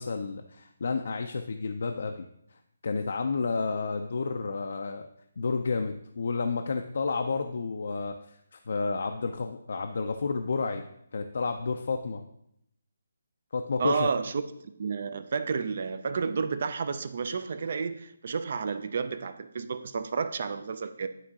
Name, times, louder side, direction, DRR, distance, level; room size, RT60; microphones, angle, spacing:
voice 1, 0.0-2.3 2.8-5.1 5.4-12.2 13.5-14.1, left 4 dB, 60° left, 5 dB, 0.4 m, -31 dB
voice 2, 13.8-14.4 14.8-21.1, right 5 dB, 50° right, 11 dB, 0.5 m, -31 dB
11.0 x 3.7 x 2.8 m, 0.77 s
figure-of-eight pair, 150°, 0 cm